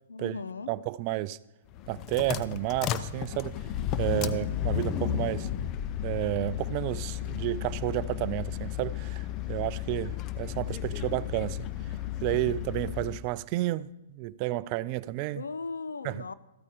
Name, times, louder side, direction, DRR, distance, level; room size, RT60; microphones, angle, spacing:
voice 1, 0.1-0.7 4.1-4.5 15.3-16.3, left 4 dB, 85° left, 0.6 m, -37 dB
voice 2, 0.7-1.4 1.9-3.6 4.0-5.5 6.0-11.7 12.2-15.4 16.0-16.2, right 17 dB, 40° right, 0.4 m, -31 dB
sound 1, 1.7-13.3, left 11 dB, 30° left, 0.6 m, -33 dB
14.0 x 8.4 x 4.9 m
hypercardioid pair, 125°, 0 cm